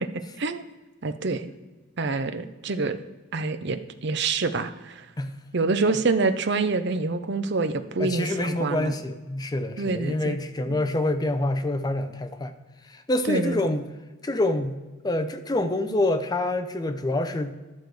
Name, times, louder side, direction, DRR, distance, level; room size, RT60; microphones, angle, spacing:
voice 1, 1.0-1.5 2.0-3.0 3.3-5.1 5.5-8.9 9.8-10.4 10.7-10.8 13.3-13.6, right 3 dB, 50° right, 10 dB, 0.6 m, -26 dB
voice 2, 8.0-12.5 12.8-13.9 14.2-14.7 15.0-17.5, left 1 dB, 20° left, 9 dB, 0.5 m, -26 dB
11.5 x 6.4 x 4.7 m, 1.2 s
head